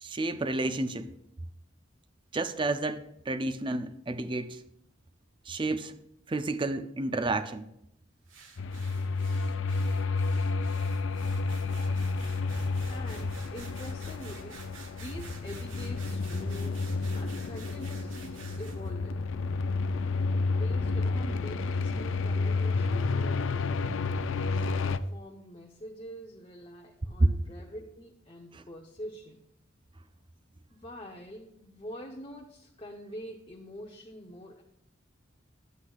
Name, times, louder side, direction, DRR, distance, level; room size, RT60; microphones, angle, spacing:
voice 1, 0.0-1.1 2.3-4.6 5.5-5.9 6.3-7.7 28.5-28.6, right 2 dB, 25° right, 0.5 m, -31 dB
sound 1, 8.3-18.9, right 5 dB, 80° right, 1.4 m, -51 dB
sound 2, 8.6-25.0, left 3 dB, 75° left, 0.4 m, -30 dB
voice 2, 12.9-14.6 14.9-19.3 20.5-23.7 24.5-29.4 30.7-34.6, equal, 30° left, 0.7 m, -45 dB
11.5 x 8.1 x 2.3 m
head